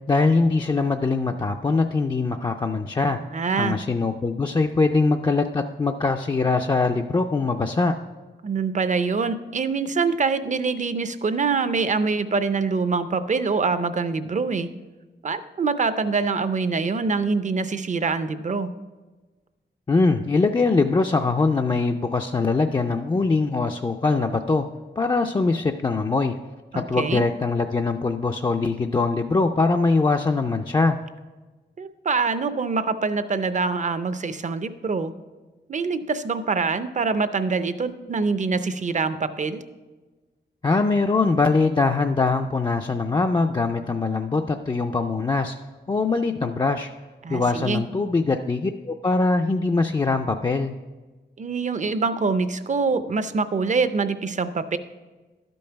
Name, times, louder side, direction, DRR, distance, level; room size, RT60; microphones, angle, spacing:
voice 1, 0.1-3.2 3.6-8.0 19.9-24.7 25.0-26.4 26.7-31.0 40.6-45.6 45.9-46.9 47.3-50.7, left 3 dB, 25° left, 3 dB, 0.4 m, -22 dB
voice 2, 3.3-3.8 8.4-14.7 15.2-18.7 26.7-27.2 31.8-35.1 35.7-39.6 47.2-47.8 51.4-54.8, right 4 dB, 45° right, 11 dB, 0.5 m, -24 dB
12.0 x 5.4 x 5.7 m, 1.3 s
wide cardioid pair, 105°, 18 cm